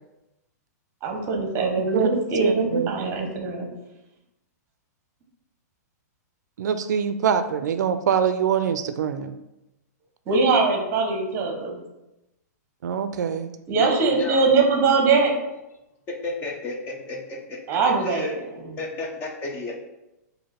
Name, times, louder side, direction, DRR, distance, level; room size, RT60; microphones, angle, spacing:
voice 1, 1.0-3.7 10.3-11.8 13.7-15.4 17.7-18.8, right 4 dB, 25° right, 2 dB, 0.9 m, -22 dB
voice 2, 2.4-3.1 6.6-9.4 12.8-13.5, right 7 dB, 80° right, 10 dB, 0.4 m, -24 dB
voice 3, 13.8-14.5 16.1-17.6 18.0-18.3 18.8-19.8, left 3 dB, 20° left, 1 dB, 0.6 m, -32 dB
4.7 x 2.6 x 4.2 m, 0.93 s
hypercardioid pair, 150°, 9 cm